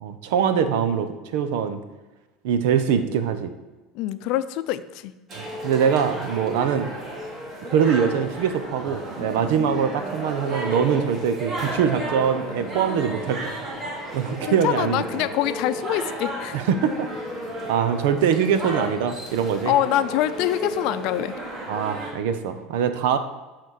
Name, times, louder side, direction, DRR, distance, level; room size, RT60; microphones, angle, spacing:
voice 1, 0.0-1.8 2.4-3.5 5.6-6.9 7.6-13.5 14.1-15.2 16.5-17.1 17.7-19.7 21.7-23.2, right 7 dB, 85° right, 10 dB, 0.9 m, -23 dB
voice 2, 3.9-5.1 14.3-16.6 19.6-21.4, left 12 dB, 60° left, 12 dB, 0.5 m, -25 dB
sound 1, 5.3-22.1, right 1 dB, 30° right, 2.6 m, -33 dB
12.5 x 4.2 x 6.5 m, 1.2 s
cardioid pair, 165°, 0 cm